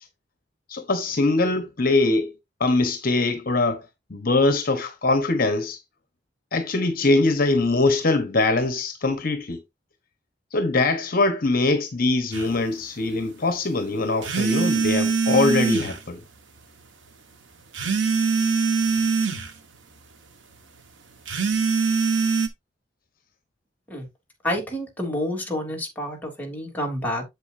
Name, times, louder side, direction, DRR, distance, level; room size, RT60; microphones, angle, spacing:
voice 1, 0.7-2.3 2.6-3.8 4.1-5.8 6.5-9.6 10.5-16.2, left 2 dB, 50° left, 1.1 m, -22 dB
sound 1, 12.3-12.5 14.2-16.0 17.7-19.5 21.3-22.5, right 5 dB, 85° right, 1.5 m, -22 dB
voice 2, 24.4-27.2, left 1 dB, 10° left, 3.1 m, -29 dB
8.1 x 7.4 x 2.7 m
head